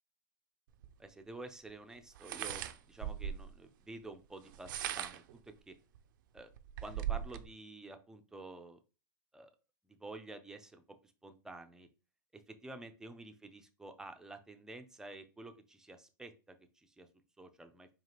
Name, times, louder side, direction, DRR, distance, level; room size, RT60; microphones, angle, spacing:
sound 1, 0.8-0.9 2.2-3.5 4.5-5.3 6.0-6.1 6.4-7.5, right 10 dB, 65° right, 0.4 m, -39 dB
voice 1, 1.0-5.7 6.3-6.5 6.8-8.8 9.3-9.5 9.8-11.9 12.3-17.1 17.4-17.9, right 2 dB, 5° right, 7 dB, 0.4 m, -50 dB
4.7 x 2.5 x 2.9 m, 0.33 s
hypercardioid pair, 125°, 12 cm